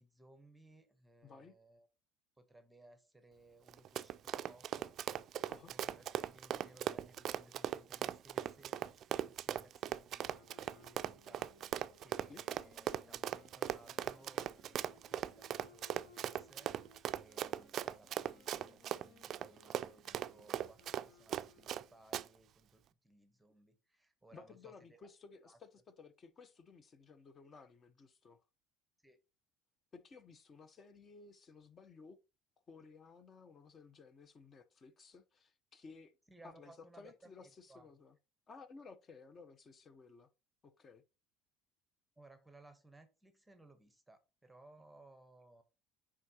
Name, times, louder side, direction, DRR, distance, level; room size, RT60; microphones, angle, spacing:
voice 1, 0.0-1.9 2.4-25.0 25.4-25.6 29.0-29.2 36.3-37.9 42.2-45.6, right 2 dB, 5° right, 0.9 m, -63 dB
voice 2, 1.2-1.5 5.5-5.7 12.3-12.4 24.3-28.4 29.9-32.2 32.7-36.1 36.4-38.2 38.5-40.3 40.6-41.0, left 4 dB, 35° left, 0.8 m, -57 dB
Run, 3.7-21.8 22.1-22.2, right 11 dB, 50° right, 0.3 m, -39 dB
sound 1, 10.2-22.0, left 4 dB, 80° left, 1.5 m, -65 dB
9.8 x 3.7 x 2.8 m
supercardioid pair, 110°, 0 cm